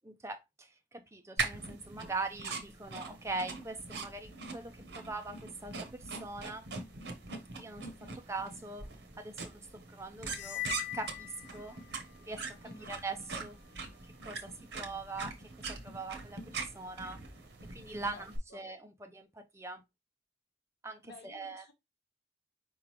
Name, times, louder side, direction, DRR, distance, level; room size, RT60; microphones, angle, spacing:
voice 1, 0.1-6.7 7.5-7.9 8.3-8.8 9.2-9.6 9.9-10.6 10.9-11.8 12.2-13.6 14.2-15.3 15.7-17.2 17.7-19.8 20.8-21.6, right 3 dB, 15° right, 0.6 m, -42 dB
sound 1, 1.4-18.4, right 4 dB, 80° right, 1.0 m, -42 dB
sound 2, 10.3-12.1, left 16 dB, 80° left, 0.4 m, -41 dB
voice 2, 12.6-13.0 18.1-18.7 21.0-21.7, left 3 dB, 65° left, 1.1 m, -54 dB
4.7 x 3.7 x 3.0 m
head